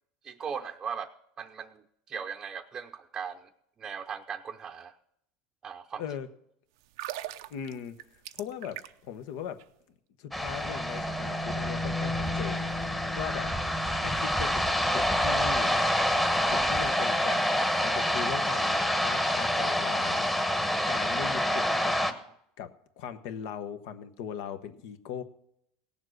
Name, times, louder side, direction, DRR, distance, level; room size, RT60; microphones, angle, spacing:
voice 1, 0.2-1.1 1.4-3.5 3.8-4.9 5.6-6.0, right 7 dB, 25° right, 3 dB, 0.7 m, -38 dB
voice 2, 6.0-6.3 7.5-8.0 8.4-9.6 10.2-12.7 13.2-13.5 14.0-15.8 16.5-20.3 20.9-22.0 22.6-25.2, left 8 dB, 70° left, 10 dB, 1.1 m, -39 dB
sound 1, 6.8-9.2 9.4-9.6, right 14 dB, 80° right, 0.6 m, -40 dB
sound 2, 10.3-22.1, left 1 dB, 5° left, 1.1 m, -27 dB
17.5 x 7.4 x 6.4 m, 0.73 s
supercardioid pair, 130°, 2 cm